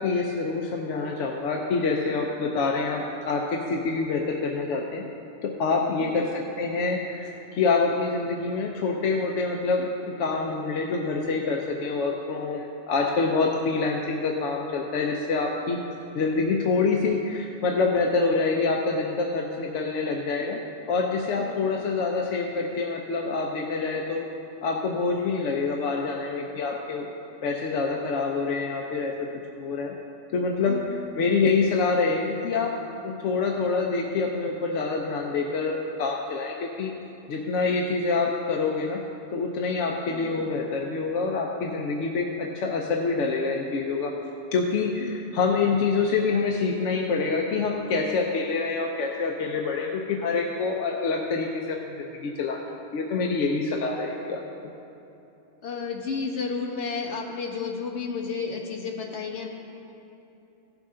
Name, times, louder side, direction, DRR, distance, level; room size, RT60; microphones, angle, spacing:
voice 1, 0.0-5.0 5.4-15.8 16.1-20.6 20.9-24.3 24.6-27.1 27.4-29.3 29.6-29.9 30.3-30.8 31.2-32.8 33.0-36.9 37.3-39.0 39.3-44.1 44.5-54.4, left 4 dB, 90° left, 0 dB, 1.0 m, -26 dB
voice 2, 5.9-6.3 21.3-21.7 30.7-31.1 40.1-40.5 45.0-45.2 55.6-59.5, left 5 dB, 70° left, 0 dB, 1.4 m, -32 dB
16.0 x 6.3 x 3.7 m, 3.0 s
omnidirectional pair, 1.2 m